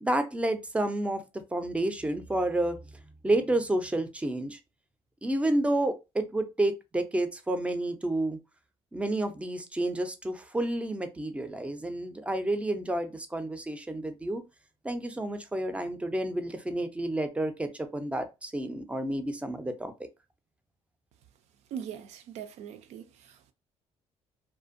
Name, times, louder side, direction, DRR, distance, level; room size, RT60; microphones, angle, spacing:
voice 1, 0.0-1.2 1.5-2.8 3.2-4.6 5.2-8.4 8.9-14.4 14.8-19.9, right 1 dB, 10° right, 0.4 m, -30 dB
voice 2, 21.7-23.5, right 8 dB, 75° right, 0.4 m, -41 dB
2.5 x 2.1 x 2.5 m
cardioid pair, 105°, 11 cm